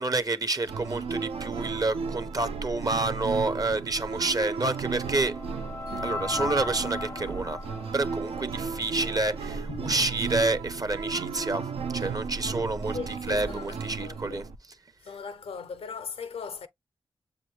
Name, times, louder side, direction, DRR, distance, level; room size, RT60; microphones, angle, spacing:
voice 1, 0.0-5.3 6.0-7.6 7.9-11.7 11.9-14.4, right 2 dB, 40° right, 0.6 m, -29 dB
sound 1, 0.7-14.6, right 5 dB, 90° right, 0.5 m, -34 dB
sound 2, 4.2-9.4, left 3 dB, 25° left, 0.3 m, -38 dB
voice 2, 9.5-10.0 12.9-14.5 15.0-16.7, left 5 dB, 80° left, 0.5 m, -39 dB
6.9 x 2.5 x 3.0 m
cardioid pair, 40°, 10 cm